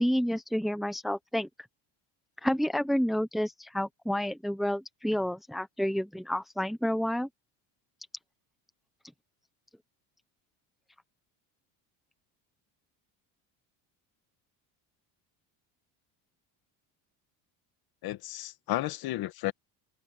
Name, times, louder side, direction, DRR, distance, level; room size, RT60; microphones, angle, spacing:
voice 1, 0.0-1.5 2.4-7.3, equal, ahead, 1.1 m, -29 dB
voice 2, 18.0-19.5, left 15 dB, 60° left, 2.1 m, -33 dB
cardioid pair, 155°, 42 cm